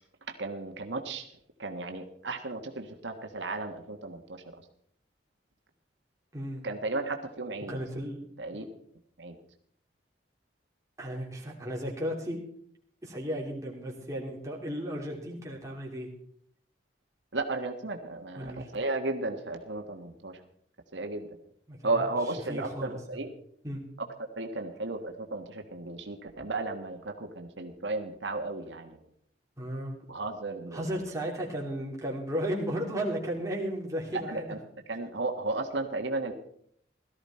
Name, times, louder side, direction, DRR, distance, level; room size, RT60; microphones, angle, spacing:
voice 1, 0.3-1.3 1.6-4.4 6.6-7.8 8.4-8.7 9.2-9.4 17.3-20.4 20.9-21.3 21.8-23.3 24.0-24.1 24.3-29.0 30.1-30.9 34.1-34.6 34.9-36.3, right 2 dB, 85° right, 4 dB, 1.5 m, -34 dB
voice 2, 6.3-6.6 7.7-8.2 8.5-8.7 11.0-12.4 13.0-16.1 18.3-18.7 21.7-22.0 22.5-23.0 23.6-23.8 29.6-30.0 30.7-34.5, equal, 20° right, -2 dB, 3.2 m, -34 dB
17.5 x 13.0 x 4.4 m, 0.65 s
head